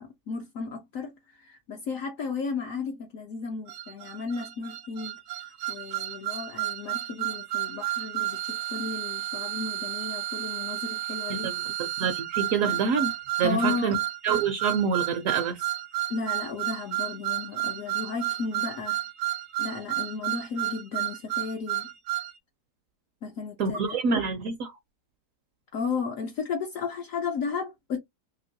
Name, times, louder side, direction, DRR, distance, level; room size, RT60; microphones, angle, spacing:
voice 1, 0.0-11.5 12.6-12.8 13.4-14.0 16.1-19.0 19.6-21.9 23.2-24.0 25.7-28.0, left 5 dB, 65° left, 0.9 m, -34 dB
sound 1, 3.7-22.3, right 15 dB, 85° right, 1.2 m, -32 dB
voice 2, 11.3-13.1 13.4-13.9 14.2-15.6 23.6-24.7, right 5 dB, 70° right, 0.8 m, -27 dB
2.9 x 2.8 x 2.7 m
omnidirectional pair, 1.8 m